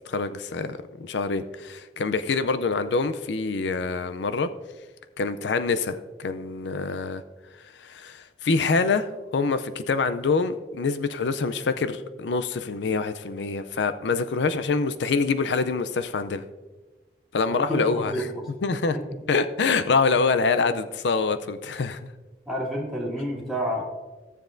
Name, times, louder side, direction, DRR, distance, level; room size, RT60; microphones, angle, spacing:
voice 1, 0.1-4.5 5.2-7.2 7.8-16.4 17.3-18.2 18.6-19.0 19.3-22.0, left 4 dB, 90° left, 11 dB, 0.5 m, -25 dB
voice 2, 17.5-18.4 18.9-19.1 22.5-23.8, equal, ahead, -5 dB, 2.2 m, -29 dB
15.0 x 7.3 x 2.6 m, 1.2 s
head